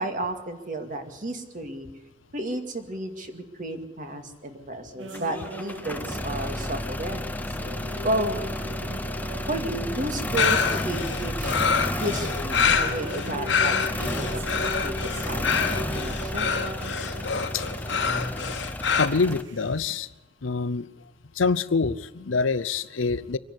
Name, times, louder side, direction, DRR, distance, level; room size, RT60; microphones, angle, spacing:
voice 1, 0.0-1.9 2.3-7.4 8.0-8.4 9.5-11.6 12.0-14.9 15.2-16.5, right 1 dB, 45° right, 6 dB, 2.2 m, -32 dB
sound 1, 5.0-20.0, right 1 dB, 70° right, 1.5 m, -40 dB
sound 2, 5.1-19.4, left 1 dB, 10° left, 0.7 m, -32 dB
sound 3, 10.4-19.1, left 6 dB, 65° left, 1.4 m, -26 dB
voice 2, 19.0-20.1 20.4-20.9 21.4-23.4, left 4 dB, 90° left, 16 dB, 0.7 m, -25 dB
24.5 x 11.0 x 9.8 m, 1.1 s
head